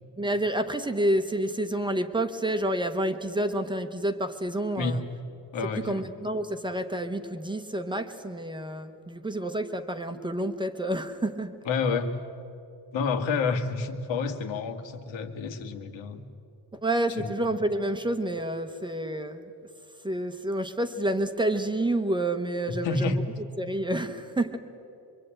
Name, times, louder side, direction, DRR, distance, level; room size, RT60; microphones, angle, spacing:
voice 1, 0.2-5.0 5.7-11.5 16.8-19.4 20.0-23.2 23.6-24.6, right 1 dB, 10° right, 8 dB, 0.8 m, -29 dB
voice 2, 5.5-6.0 11.7-12.2 12.9-16.2 17.2-17.3 22.7-23.2, left 4 dB, 90° left, 5 dB, 2.1 m, -29 dB
25.0 x 24.0 x 8.9 m, 2.7 s
cardioid pair, 180°, 44 cm